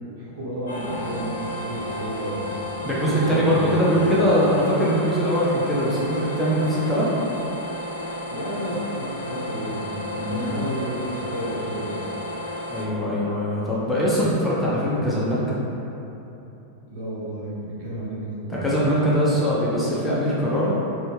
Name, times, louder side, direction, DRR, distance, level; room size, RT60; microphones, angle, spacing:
voice 1, 0.0-2.4 3.0-3.8 8.3-9.8 10.2-12.0 16.9-18.6, right 1 dB, 50° right, -8 dB, 1.0 m, -32 dB
sound 1, 0.7-12.8, left 1 dB, 65° left, 0.5 m, -32 dB
voice 2, 2.8-7.1 10.2-10.6 12.7-15.6 18.5-20.7, equal, 5° left, -8 dB, 0.5 m, -22 dB
4.0 x 2.2 x 3.2 m, 3.0 s
figure-of-eight pair, 90°, 0 cm